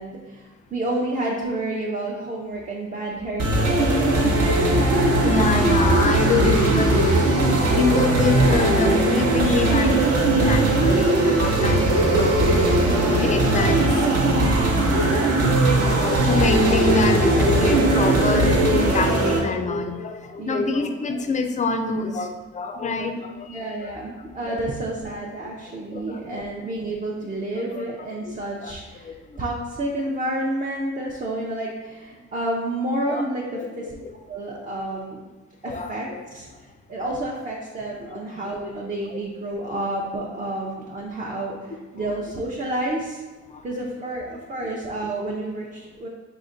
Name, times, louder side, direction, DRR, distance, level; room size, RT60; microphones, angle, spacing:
voice 1, 0.0-4.5 12.8-13.2 20.4-20.6 23.5-33.9 34.3-35.2 35.6-43.2 43.6-46.1, right 1 dB, 25° right, -2 dB, 0.6 m, -30 dB
sound 1, 3.4-19.4, right 2 dB, 55° right, 0.8 m, -19 dB
voice 2, 5.2-12.4 13.2-14.0 15.8-23.9 24.5-24.6 25.9-26.4 27.7-27.8 28.2-28.3 28.6-28.7 29.0-29.2 33.1-33.2 33.5-34.1 35.7-36.2 39.1-39.2 42.0-42.2 43.5-43.6, left 3 dB, 25° left, 6 dB, 0.4 m, -25 dB
4.8 x 2.2 x 3.8 m, 1.2 s
cardioid pair, 90°, 30 cm